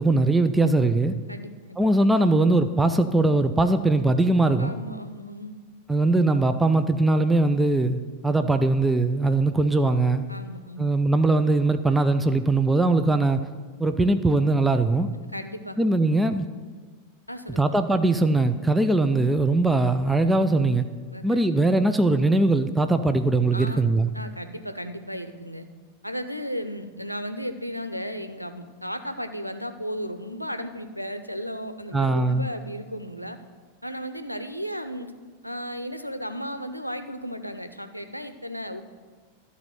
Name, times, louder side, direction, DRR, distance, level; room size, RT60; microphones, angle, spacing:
voice 1, 0.0-1.2 1.8-4.7 5.9-10.2 10.8-13.5 13.8-15.1 15.8-16.5 17.6-20.9 21.2-24.1 31.9-32.5, right 2 dB, 5° right, 9 dB, 0.4 m, -21 dB
voice 2, 1.3-1.8 4.6-5.6 10.3-10.9 15.3-15.8 17.3-17.7 21.1-21.5 23.5-25.7 26.0-33.4 33.8-35.1 35.4-38.8, equal, 90° left, 9 dB, 0.6 m, -35 dB
12.0 x 4.1 x 7.8 m, 1.5 s
figure-of-eight pair, 90°, 0 cm